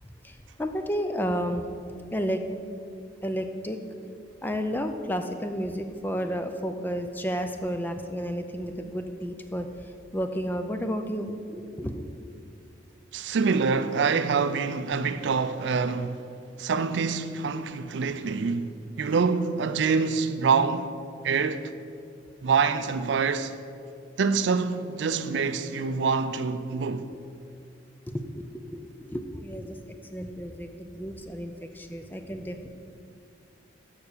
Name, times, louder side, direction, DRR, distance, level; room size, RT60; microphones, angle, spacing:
voice 1, 0.0-1.7 2.1-2.4 3.2-3.8 4.4-9.7 10.1-12.1 28.1-29.8 30.1-32.7, equal, 10° left, 0.4 m, -32 dB
voice 2, 13.1-16.2 16.6-18.7 19.0-20.9 21.2-21.7 22.4-23.5 24.2-27.1, right 5 dB, 70° right, 0.4 m, -26 dB
7.0 x 5.7 x 6.7 m
head